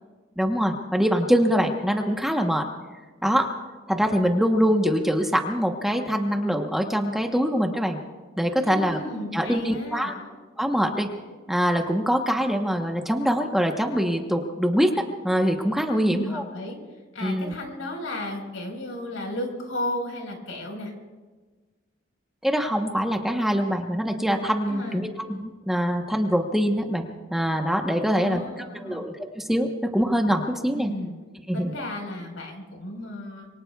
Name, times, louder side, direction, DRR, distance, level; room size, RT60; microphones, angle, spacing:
voice 1, 0.4-2.7 3.2-3.5 3.9-8.0 8.4-9.0 9.3-10.1 10.6-11.1 11.5-16.4 17.2-17.5 22.4-28.4 28.7-30.9 31.5-31.7, equal, ahead, 2 dB, 1.0 m, -24 dB
voice 2, 8.6-10.1 15.9-16.8 17.1-20.9 24.7-25.0 28.1-29.0 30.7-31.1 31.5-33.5, left 1 dB, 85° left, 2 dB, 4.4 m, -34 dB
26.5 x 23.0 x 2.3 m, 1.3 s
head